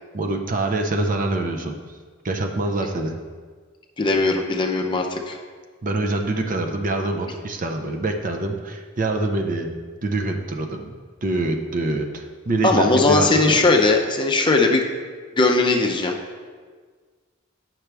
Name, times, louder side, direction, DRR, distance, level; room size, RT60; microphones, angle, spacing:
voice 1, 0.1-1.8 2.2-3.2 5.8-10.9 11.2-13.7, right 2 dB, 40° right, 4 dB, 0.6 m, -25 dB
voice 2, 4.0-5.4 12.6-14.8 15.4-16.2, left 3 dB, 25° left, 2 dB, 0.6 m, -19 dB
9.1 x 5.9 x 3.4 m, 1.6 s
head